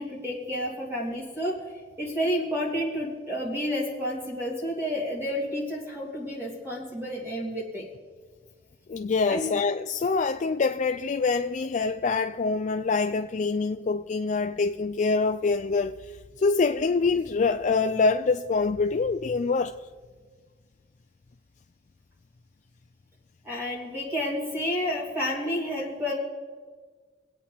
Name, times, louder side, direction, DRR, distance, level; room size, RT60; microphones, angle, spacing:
voice 1, 0.0-1.5 2.0-7.8 9.3-9.6 23.4-26.1, equal, 15° right, 3.1 m, -30 dB
voice 2, 8.9-19.8, left 4 dB, 40° left, 0.4 m, -25 dB
25.5 x 8.6 x 3.5 m
head